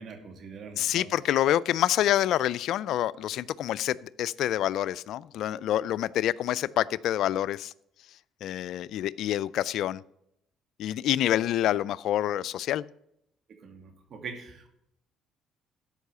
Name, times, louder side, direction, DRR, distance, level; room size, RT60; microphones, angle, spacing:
voice 1, 0.0-1.2 13.6-14.7, right 5 dB, 55° right, 5 dB, 2.5 m, -43 dB
voice 2, 0.8-7.7 8.4-10.0 10.8-12.8, left 12 dB, 70° left, 20 dB, 0.4 m, -27 dB
13.0 x 5.5 x 6.7 m, 0.76 s
supercardioid pair, 80°, 0 cm